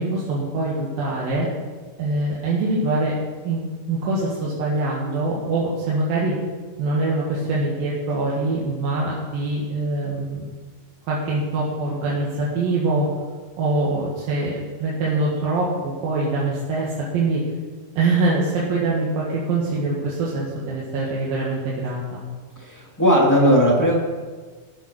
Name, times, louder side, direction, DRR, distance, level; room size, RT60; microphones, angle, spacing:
voice 1, 0.0-1.5 2.0-3.2 3.5-3.6 3.9-6.4 6.8-10.5 11.1-13.1 13.6-17.4 18.0-22.2, right 2 dB, 80° right, -6 dB, 3.5 m, -24 dB
voice 2, 22.5-23.9, equal, 10° left, -3 dB, 1.2 m, -17 dB
13.0 x 8.4 x 6.1 m, 1.4 s
omnidirectional pair, 4.0 m